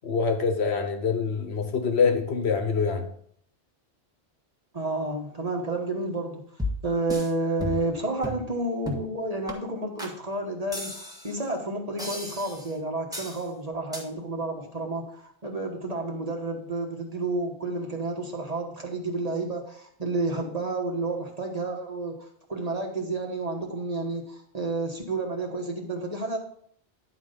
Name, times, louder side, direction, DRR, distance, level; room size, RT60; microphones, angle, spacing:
voice 1, 0.0-3.1, left 5 dB, 80° left, 1.3 m, -25 dB
voice 2, 4.7-6.4 6.8-26.4, right 2 dB, 35° right, 1.4 m, -30 dB
sound 1, 6.6-7.3 7.6-8.0 8.2-8.5 8.9-9.1 9.5-9.6 10.0-10.1 10.7-11.4 12.0-12.7 13.1-13.4 13.9-14.0, left 1 dB, 5° right, 1.3 m, -34 dB
10.5 x 4.2 x 5.1 m
omnidirectional pair, 1.1 m